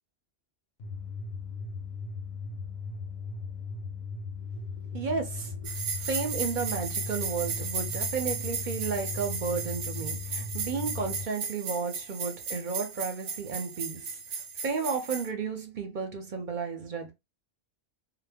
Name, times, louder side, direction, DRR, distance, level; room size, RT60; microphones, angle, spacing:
sound 1, 0.8-11.2, left 4 dB, 50° left, 0.6 m, -38 dB
voice 1, 4.8-14.2 14.6-17.1, right 5 dB, 50° right, 0.7 m, -33 dB
sound 2, 5.6-15.3, right 5 dB, 85° right, 0.9 m, -35 dB
2.2 x 2.1 x 3.4 m
omnidirectional pair, 1.2 m